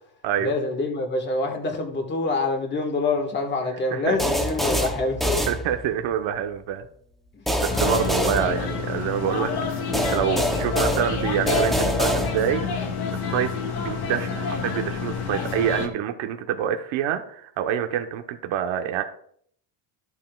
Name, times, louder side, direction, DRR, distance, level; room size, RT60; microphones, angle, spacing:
voice 1, 0.4-5.2 7.3-7.5 8.1-8.4, left 3 dB, 20° left, 3 dB, 1.5 m, -26 dB
sound 1, 4.2-6.1 7.5-9.2 9.9-12.7, equal, ahead, 0.7 m, -25 dB
voice 2, 5.5-6.9 7.6-9.8 10.1-12.6 13.3-13.5 13.8-19.0, right 9 dB, 70° right, 5 dB, 1.1 m, -26 dB
sound 2, 7.7-15.9, left 5 dB, 50° left, 1.8 m, -28 dB
14.0 x 8.4 x 2.3 m, 0.62 s
cardioid pair, 170°, 48 cm